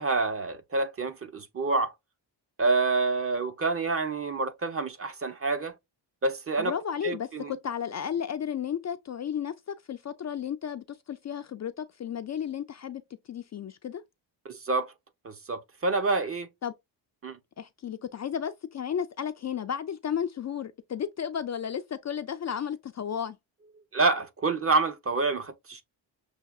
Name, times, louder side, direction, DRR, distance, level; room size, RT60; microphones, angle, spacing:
voice 1, 0.0-1.9 2.6-5.7 6.2-6.7 7.0-7.5 14.4-14.9 15.2-16.5 17.2-17.4 23.9-25.8, right 3 dB, 30° right, 0.7 m, -27 dB
voice 2, 6.6-13.0 13.3-14.0 16.6-16.7 17.6-23.4, left 8 dB, 40° left, 0.4 m, -33 dB
6.4 x 2.8 x 2.3 m
cardioid pair, 115°, 46 cm